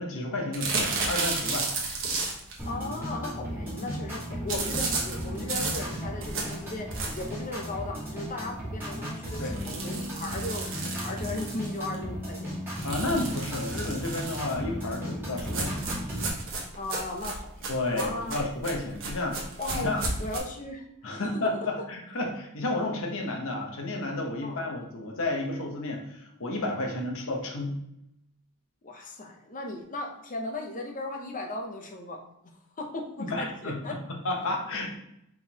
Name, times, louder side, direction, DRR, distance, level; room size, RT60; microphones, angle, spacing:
voice 1, 0.0-1.7 9.4-9.5 12.8-15.8 17.7-20.0 21.0-27.7 33.2-35.0, left 2 dB, 65° left, 2 dB, 0.9 m, -31 dB
sound 1, 0.5-2.6 4.5-7.4 7.9-8.0 8.3-8.4 8.7-8.8 9.4-12.0 12.8-14.5 15.4-20.4, right 3 dB, 60° right, 1.1 m, -33 dB
sound 2, 2.6-16.3, equal, 10° right, 1.7 m, -36 dB
voice 2, 2.7-12.5 16.7-18.4 19.6-21.2 21.6-21.7 24.4-24.6 28.8-32.2 32.8-34.0, left 2 dB, 35° left, 2 dB, 0.7 m, -37 dB
4.6 x 3.7 x 2.8 m, 0.79 s
head